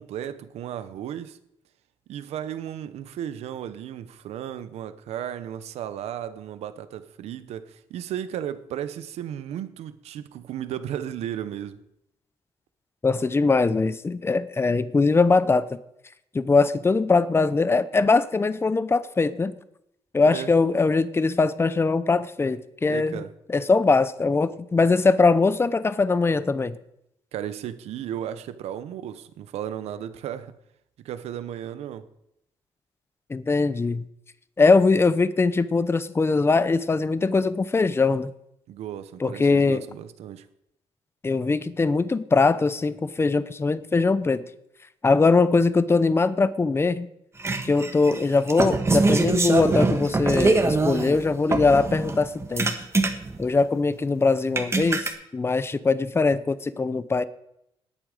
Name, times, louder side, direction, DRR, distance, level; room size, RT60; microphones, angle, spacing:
voice 1, 0.0-1.4 2.1-11.8 20.3-20.5 22.9-23.3 27.3-30.5 31.0-32.1 38.7-40.5, right 10 dB, 85° right, 1.0 m, -34 dB
voice 2, 13.0-15.8 16.3-19.5 20.1-23.2 23.5-26.8 33.3-34.0 34.6-38.3 39.2-39.8 41.2-44.5 45.0-47.1 47.6-52.7 53.4-57.2, left 3 dB, 25° left, 0.8 m, -21 dB
sound 1, 47.4-51.2 51.5-53.4 54.0-54.1 54.6-55.1, right 3 dB, 25° right, 1.7 m, -23 dB
18.5 x 8.9 x 5.0 m
cardioid pair, 95°, 11 cm